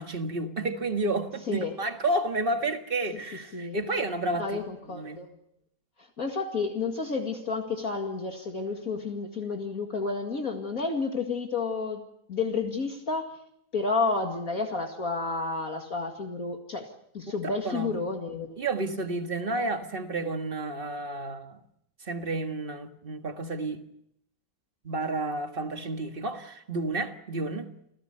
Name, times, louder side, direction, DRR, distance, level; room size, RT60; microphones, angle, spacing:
voice 1, 0.0-5.2 17.4-18.0 18.6-21.6 22.0-23.8 24.8-27.7, right 2 dB, 30° right, 1.8 m, -31 dB
voice 2, 4.4-5.3 6.2-12.0 12.3-13.4 13.7-16.8 17.1-18.6, left 4 dB, 50° left, 2.6 m, -30 dB
29.5 x 16.5 x 6.8 m
omnidirectional pair, 2.0 m